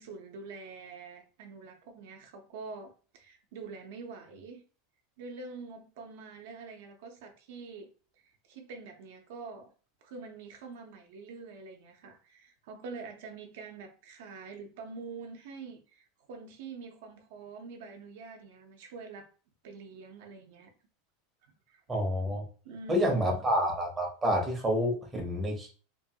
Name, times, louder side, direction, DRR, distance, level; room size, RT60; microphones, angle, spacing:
voice 1, 0.0-4.6 5.2-7.9 8.2-9.7 10.0-19.3 19.6-20.7 21.7-21.8 22.6-23.4, right 4 dB, 65° right, 0.6 m, -45 dB
voice 2, 21.9-22.4 22.9-25.7, equal, 10° right, 0.6 m, -28 dB
2.9 x 2.2 x 2.7 m
supercardioid pair, 170°, 0 cm